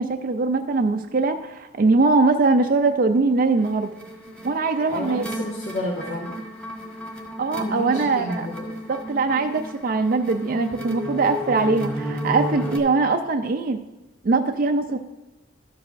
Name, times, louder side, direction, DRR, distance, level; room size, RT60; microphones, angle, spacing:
voice 1, 0.0-3.9 4.4-5.2 7.4-8.5 8.9-13.8 14.2-15.0, right 3 dB, 45° right, 4 dB, 0.4 m, -21 dB
sound 1, 3.6-12.8, equal, 5° left, 1.3 m, -33 dB
voice 2, 4.9-6.3 7.6-8.7, equal, 80° left, -4 dB, 1.6 m, -31 dB
12.5 x 8.0 x 2.6 m, 1.0 s
head